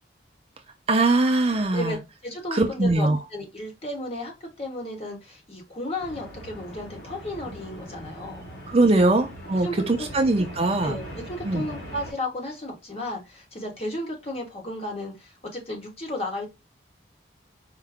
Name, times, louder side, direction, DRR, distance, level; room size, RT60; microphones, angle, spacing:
voice 1, 0.9-2.0 2.5-3.2 8.7-11.0 11.4-11.6, right 2 dB, 30° right, 0.5 m, -21 dB
voice 2, 2.2-8.4 8.9-9.1 9.6-10.1 10.8-16.5, left 1 dB, 30° left, 1.1 m, -34 dB
sound 1, 6.0-12.1, equal, 65° left, 1.6 m, -41 dB
4.7 x 2.2 x 3.4 m
head